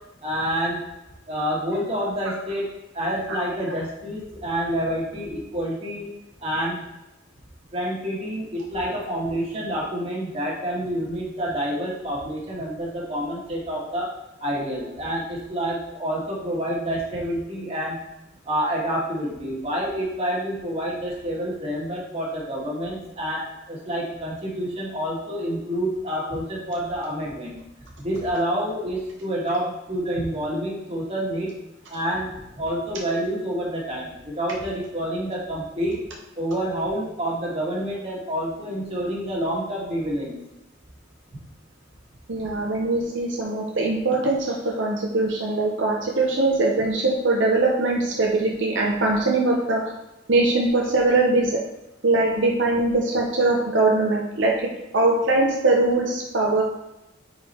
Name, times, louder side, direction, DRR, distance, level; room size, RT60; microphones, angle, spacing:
voice 1, 0.2-0.8 1.3-2.7 2.9-6.1 6.4-6.8 7.7-14.1 14.4-18.0 18.5-23.4 23.7-27.5 28.0-31.5 31.9-36.0 36.4-40.3, equal, 30° right, -4 dB, 1.8 m, -28 dB
voice 2, 42.3-49.9 50.3-51.6 52.0-54.6 54.9-56.6, right 2 dB, 75° right, -1 dB, 0.8 m, -21 dB
4.8 x 4.6 x 4.3 m, 0.93 s
head